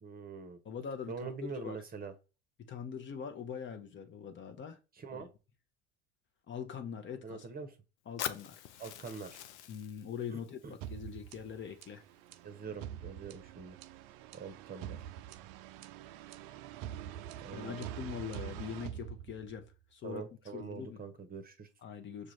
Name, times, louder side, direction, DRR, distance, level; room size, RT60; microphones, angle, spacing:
voice 1, 0.0-0.6 1.1-2.1 4.9-5.3 7.2-7.7 8.8-9.4 10.3-10.7 12.4-13.8 14.3-15.0 17.3-17.9 20.0-21.7, right 5 dB, 25° right, 0.8 m, -44 dB
voice 2, 0.6-1.8 2.6-4.8 5.1-5.2 6.5-7.5 8.1-8.6 9.7-12.0 17.5-19.7 19.9-20.2 20.5-21.0 21.8-22.3, left 7 dB, 35° left, 0.7 m, -42 dB
Fire, 8.2-12.2, left 11 dB, 80° left, 0.5 m, -45 dB
sound 1, 10.8-19.7, right 11 dB, 60° right, 0.5 m, -45 dB
6.4 x 2.4 x 3.2 m
hypercardioid pair, 80°, 35 cm